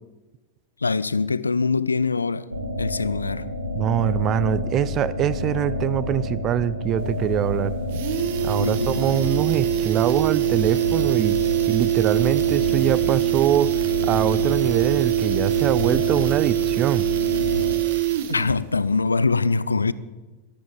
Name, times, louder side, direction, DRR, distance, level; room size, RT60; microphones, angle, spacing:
voice 1, 0.8-2.5 2.8-3.5 8.6-9.0 18.3-19.9, left 4 dB, 80° left, 0.5 m, -23 dB
sound 1, 2.5-17.7, left 1 dB, 85° right, 2.6 m, -29 dB
voice 2, 3.8-7.7 8.4-13.7 14.0-17.1, right 11 dB, 30° right, 0.6 m, -23 dB
sound 2, 7.0-7.1 7.4-7.5 7.8-18.6 18.9-19.0, right 15 dB, 50° right, 1.4 m, -23 dB
14.0 x 12.0 x 7.1 m
figure-of-eight pair, 90°, 0 cm